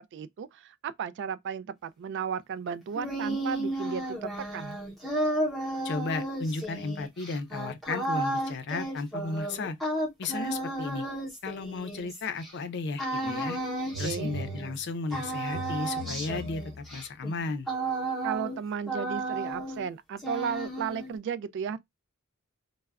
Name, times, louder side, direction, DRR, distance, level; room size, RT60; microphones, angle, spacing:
voice 1, 0.1-4.8 14.0-14.3 18.2-21.8, right 7 dB, 55° right, 0.3 m, -34 dB
sound 1, 2.7-12.5 13.0-14.9 15.1-18.6 18.9-19.9 20.2-21.2, right 1 dB, ahead, 0.7 m, -33 dB
voice 2, 5.8-9.8 10.2-11.1 11.4-13.6 14.0-17.7, left 3 dB, 55° left, 0.5 m, -34 dB
sound 2, 13.2-13.6 13.9-17.0, right 1 dB, 70° right, 0.9 m, -41 dB
2.3 x 2.0 x 3.3 m
head